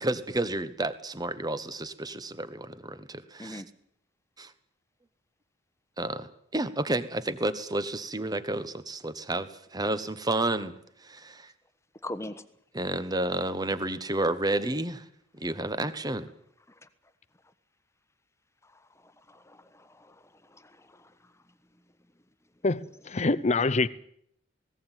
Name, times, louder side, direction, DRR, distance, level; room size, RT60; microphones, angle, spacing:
voice 1, 0.0-3.6 4.4-4.5 6.0-10.7 11.0-11.5 12.7-15.0 15.4-16.3, right 2 dB, 20° right, 1.3 m, -31 dB
voice 2, 12.0-12.4 16.7-16.8 18.6-21.3, left 1 dB, 15° left, 1.3 m, -43 dB
voice 3, 22.6-23.9, left 3 dB, 35° left, 0.8 m, -25 dB
19.0 x 17.5 x 9.2 m
head